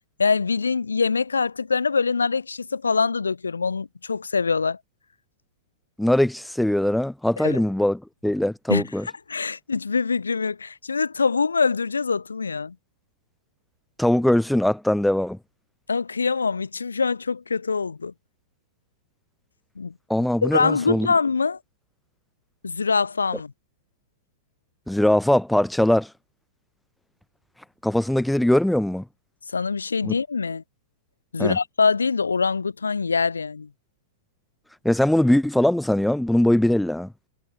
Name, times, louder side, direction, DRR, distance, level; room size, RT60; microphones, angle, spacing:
voice 1, 0.2-4.8 7.4-7.6 8.7-8.8 9.3-12.7 15.9-18.1 19.8-19.9 20.4-21.6 22.6-23.5 29.5-30.6 31.3-33.7, left 5 dB, 80° left, 0.7 m, -24 dB
voice 2, 6.0-9.0 14.0-15.4 20.1-21.1 24.9-26.1 27.8-29.0 30.0-30.1 31.4-31.6 34.8-37.1, left 1 dB, ahead, 0.3 m, -21 dB
figure-of-eight pair, 100°, 0 cm